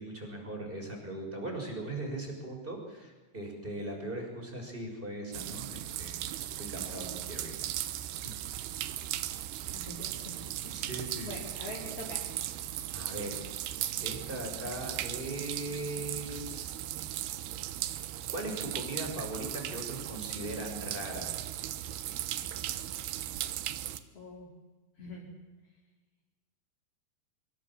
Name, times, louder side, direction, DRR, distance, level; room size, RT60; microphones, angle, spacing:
voice 1, 0.0-6.3 6.6-7.6 8.2-8.4 10.7-11.4 12.9-13.4 14.0-16.7 18.3-21.3, right 1 dB, 10° right, 2 dB, 6.0 m, -39 dB
sound 1, 5.3-24.0, right 13 dB, 75° right, 2.9 m, -37 dB
voice 2, 9.7-10.9 11.2-12.3 24.1-24.5 25.0-25.3, left 2 dB, 35° left, -3 dB, 4.8 m, -44 dB
25.0 x 24.5 x 7.5 m, 1.2 s
omnidirectional pair, 5.2 m